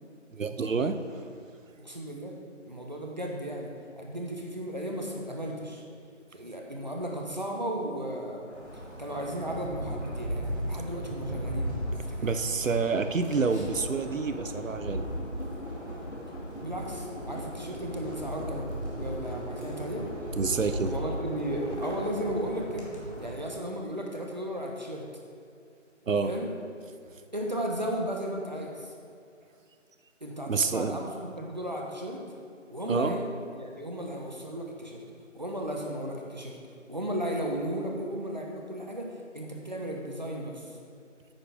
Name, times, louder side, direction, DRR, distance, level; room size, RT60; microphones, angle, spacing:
voice 1, 0.3-1.2 12.2-15.1 20.4-20.9 26.1-26.3 30.5-31.1 32.9-33.2, right 4 dB, 90° right, 9 dB, 0.8 m, -28 dB
voice 2, 1.8-2.3 2.6-3.7 4.0-5.8 6.3-8.5 9.0-12.2 16.6-18.7 19.0-20.0 20.8-22.9 23.2-25.0 26.2-26.5 27.3-28.9 30.2-32.2 32.7-33.2 33.5-35.0 35.3-36.6 36.9-40.7, equal, 35° right, 0 dB, 1.0 m, -35 dB
sound 1, 8.5-23.3, equal, 15° right, 1.5 m, -37 dB
sound 2, 12.7-23.0, left 1 dB, 60° left, 2.3 m, -42 dB
9.6 x 9.2 x 3.6 m, 2.4 s
figure-of-eight pair, 175°, 38 cm